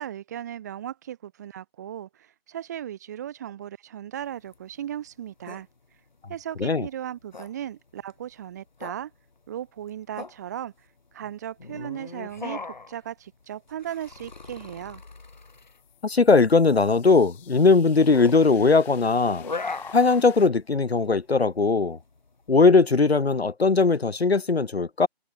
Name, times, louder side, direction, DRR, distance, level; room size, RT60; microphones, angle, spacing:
voice 1, 0.0-5.7 6.3-9.1 9.5-10.7 11.1-12.6 12.9-15.0, right 10 dB, 15° right, 5.3 m, -36 dB
sound 1, 4.2-23.5, left 3 dB, 45° left, 2.7 m, -40 dB
sound 2, 15.0-20.5, left 16 dB, 5° left, 3.8 m, -53 dB
voice 2, 16.0-19.4 19.9-22.0 22.5-25.1, left 4 dB, 85° left, 0.8 m, -19 dB
figure-of-eight pair, 160°, 31 cm